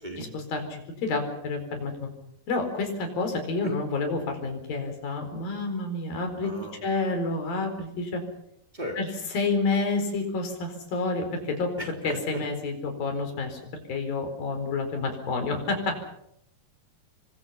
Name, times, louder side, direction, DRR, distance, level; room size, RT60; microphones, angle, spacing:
voice 1, 0.2-2.1 2.5-6.5 6.8-8.2 9.0-11.7 12.0-13.6 13.9-16.0, left 3 dB, 75° left, 5 dB, 6.2 m, -29 dB
voice 2, 6.4-6.8 8.7-9.0 11.8-12.1, equal, 10° right, 2 dB, 3.4 m, -36 dB
28.5 x 24.0 x 5.8 m, 0.76 s
omnidirectional pair, 4.2 m